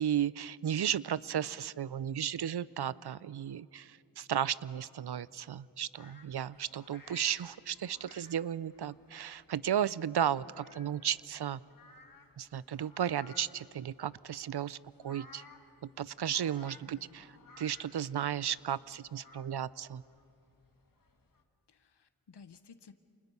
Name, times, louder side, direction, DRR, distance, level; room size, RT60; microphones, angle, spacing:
voice 1, 0.0-11.6 12.4-14.8 15.0-15.4 15.8-17.3 17.6-20.0, right 9 dB, 70° right, 19 dB, 0.5 m, -34 dB
sound 1, 5.9-21.4, left 3 dB, 55° left, 1.9 m, -58 dB
voice 2, 16.9-17.2 21.7-22.9, left 5 dB, 75° left, 10 dB, 0.9 m, -56 dB
29.0 x 27.5 x 5.4 m, 2.4 s
wide cardioid pair, 80°, 41 cm